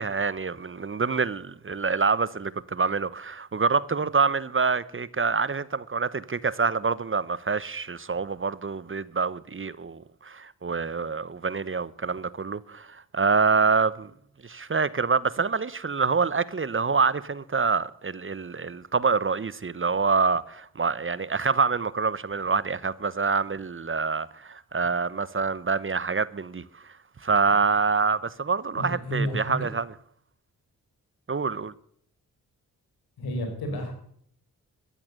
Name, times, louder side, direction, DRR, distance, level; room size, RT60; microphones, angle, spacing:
voice 1, 0.0-14.1 14.4-26.9 27.2-29.9 31.3-31.7, right 5 dB, 35° right, 0.9 m, -26 dB
voice 2, 28.7-29.6 33.2-33.9, equal, 85° left, 4.7 m, -31 dB
13.5 x 12.5 x 6.7 m
supercardioid pair, 40°, 36 cm